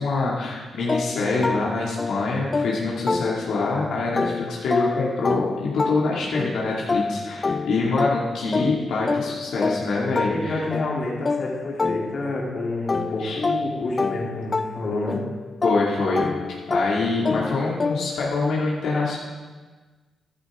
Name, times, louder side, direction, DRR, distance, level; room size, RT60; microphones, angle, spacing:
voice 1, 0.0-10.6 13.2-13.4 15.6-16.2 16.5-19.2, left 3 dB, 85° left, -5 dB, 2.3 m, -25 dB
sound 1, 0.9-3.8 4.2-12.5 12.9-18.3, left 4 dB, 30° left, 0.4 m, -28 dB
voice 2, 10.3-15.2, left 2 dB, 55° left, -3 dB, 2.9 m, -29 dB
14.0 x 11.5 x 3.7 m, 1.3 s
cardioid pair, 95°, 0 cm